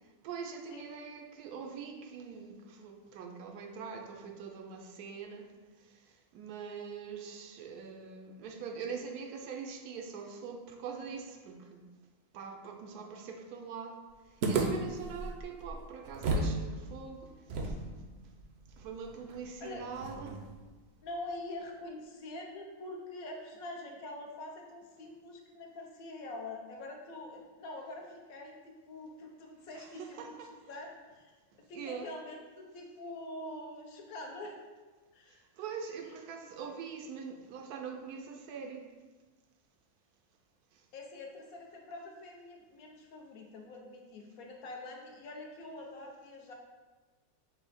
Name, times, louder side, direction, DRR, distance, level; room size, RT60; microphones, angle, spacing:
voice 1, 0.2-5.5 5.8-11.8 12.3-14.0 14.3-17.8 18.8-20.5 29.8-30.5 31.7-32.1 35.3-38.9 40.7-40.8, right 6 dB, 90° right, 4 dB, 1.1 m, -43 dB
sound 1, 14.4-16.6 16.8-16.9 17.5-20.6, right 2 dB, 65° right, 0.6 m, -35 dB
voice 2, 21.0-30.3 30.7-34.6 35.1-35.4 40.9-46.5, left 2 dB, 70° left, 1 dB, 1.1 m, -45 dB
5.6 x 2.1 x 4.0 m, 1.3 s
omnidirectional pair, 1.6 m